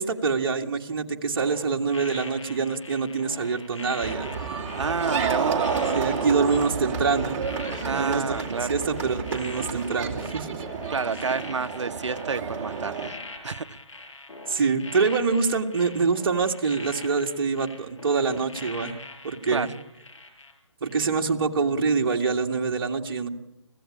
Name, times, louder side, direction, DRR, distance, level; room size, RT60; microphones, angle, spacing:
voice 1, 0.0-4.3 5.9-7.4 7.8-10.6 14.5-18.9 19.2-19.7 20.8-23.3, right 4 dB, 45° right, 3 dB, 1.9 m, -25 dB
sound 1, 1.4-20.5 20.9-21.1, left 3 dB, 75° left, 6.5 m, -43 dB
sound 2, 4.0-13.1, right 5 dB, 30° right, 2.9 m, -30 dB
voice 2, 4.8-5.6 7.8-8.7 10.9-13.2 13.4-14.0 19.5-19.7, right 5 dB, 70° right, 11 dB, 1.0 m, -29 dB
25.5 x 15.5 x 8.8 m, 0.88 s
figure-of-eight pair, 150°, 16 cm